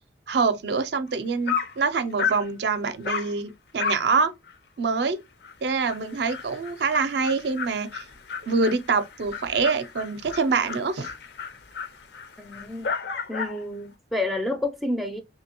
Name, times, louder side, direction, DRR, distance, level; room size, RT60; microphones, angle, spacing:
voice 1, 0.3-4.3 4.8-5.2 5.6-8.0 8.4-11.1, right 4 dB, 60° right, 0.4 m, -25 dB
Dog, 1.1-1.2 1.5-1.8 2.2-2.5 3.0-3.3 3.8-4.1 4.5-4.6 5.0-5.1 5.4-5.5 5.8-13.6, left 6 dB, 60° left, 0.5 m, -33 dB
voice 2, 12.4-12.9 13.3-15.2, left 2 dB, ahead, 0.3 m, -29 dB
3.0 x 2.7 x 2.9 m
head